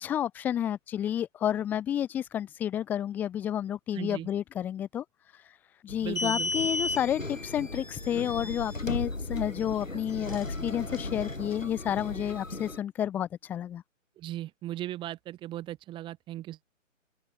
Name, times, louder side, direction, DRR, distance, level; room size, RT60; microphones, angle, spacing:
voice 1, 0.0-5.0 5.8-13.8, left 10 dB, 5° left, 1.0 m, -30 dB
voice 2, 3.9-4.3 6.0-6.5 14.2-16.6, right 14 dB, 10° right, 6.0 m, -37 dB
sound 1, 5.9-12.8, left 2 dB, 80° left, 7.1 m, -35 dB
open air
figure-of-eight pair, 140°, 39 cm